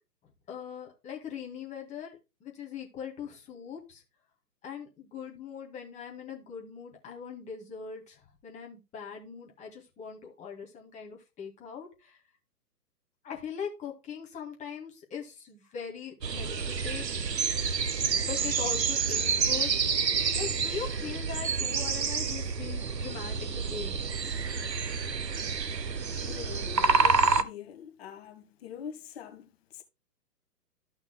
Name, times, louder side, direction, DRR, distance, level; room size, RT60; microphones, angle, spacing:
voice 1, 0.5-4.0 4.6-12.2 13.2-17.0 18.3-19.7 20.3-24.1, left 7 dB, 15° left, 2.0 m, -41 dB
sound 1, 16.2-27.4, right 5 dB, 90° right, 0.8 m, -28 dB
voice 2, 26.2-29.8, left 8 dB, 40° left, 1.5 m, -44 dB
13.5 x 5.8 x 2.2 m
figure-of-eight pair, 125°, 49 cm